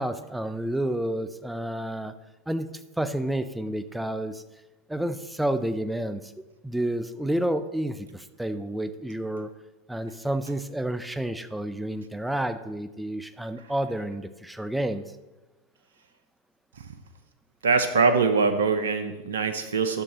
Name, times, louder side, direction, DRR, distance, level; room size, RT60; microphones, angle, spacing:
voice 1, 0.0-2.1 2.5-4.4 4.9-6.3 6.6-9.5 9.9-15.0, right 1 dB, 5° right, 11 dB, 0.4 m, -30 dB
voice 2, 17.6-20.0, right 4 dB, 80° right, 9 dB, 0.6 m, -23 dB
12.5 x 6.4 x 2.9 m, 1.1 s
hypercardioid pair, 90°, 0 cm